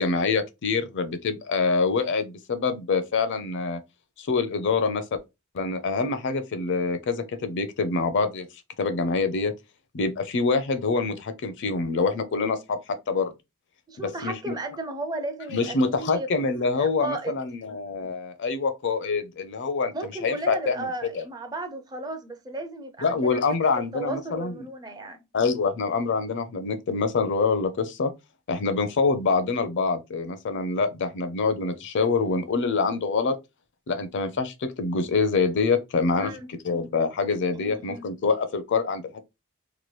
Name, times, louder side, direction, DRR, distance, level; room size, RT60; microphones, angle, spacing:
voice 1, 0.0-3.8 4.2-5.0 5.5-8.5 8.8-9.5 9.9-13.3 14.0-14.5 15.5-19.9 20.2-20.9 21.1-21.2 23.0-24.6 25.3-28.1 28.5-33.4 33.9-39.0, left 4 dB, 55° left, 0.5 m, -25 dB
voice 2, 13.9-16.3 16.8-17.6 19.9-23.4 23.9-25.2 36.2-36.5 37.6-38.1, right 2 dB, 20° right, 0.4 m, -35 dB
2.9 x 2.2 x 3.0 m
head